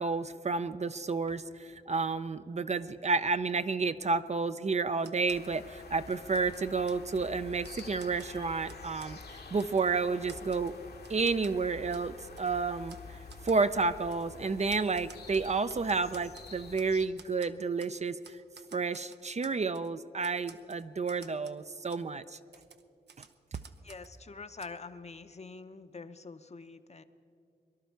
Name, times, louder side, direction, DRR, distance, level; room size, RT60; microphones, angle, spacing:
voice 1, 0.0-9.2 9.5-10.8 11.1-13.0 13.4-18.4 18.7-22.4, right 4 dB, 40° right, 12 dB, 0.5 m, -31 dB
Typewriter, 5.0-5.6 6.0-7.3 7.6-9.2 9.6-9.9 10.3-11.6 11.9-12.1 12.4-12.5 12.9-13.0 13.3-13.6 14.1-14.3 14.7-16.9 17.2-18.0 18.2-19.9 20.2-21.6 21.9-22.0 22.5-24.2 24.6-24.7, right 6 dB, 80° right, 0.8 m, -54 dB
sound 1, 5.3-17.1, left 4 dB, 70° left, 1.1 m, -48 dB
voice 2, 23.8-27.0, left 4 dB, 40° left, 10 dB, 0.7 m, -45 dB
23.0 x 11.5 x 4.6 m, 2.5 s
cardioid pair, 60°, 17 cm